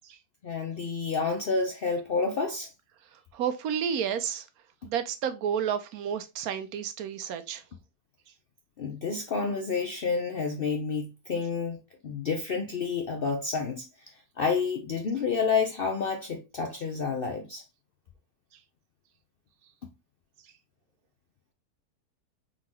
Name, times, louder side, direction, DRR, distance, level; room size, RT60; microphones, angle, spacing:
voice 1, 0.4-2.7 8.8-13.9 14.4-17.6, left 5 dB, 60° left, 0.6 m, -29 dB
voice 2, 3.3-4.4 4.8-7.6, right 8 dB, 75° right, 1.0 m, -30 dB
3.8 x 3.8 x 3.1 m
omnidirectional pair, 1.6 m